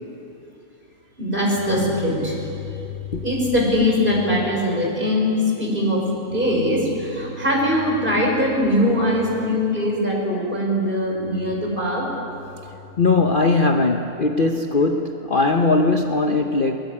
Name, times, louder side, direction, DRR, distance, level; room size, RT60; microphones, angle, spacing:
voice 1, 1.2-2.8 3.1-12.1, left 1 dB, 35° right, -2 dB, 6.0 m, -21 dB
voice 2, 13.0-16.8, left 3 dB, 40° left, 4 dB, 1.0 m, -19 dB
23.0 x 22.5 x 8.7 m, 2.8 s
omnidirectional pair, 1.6 m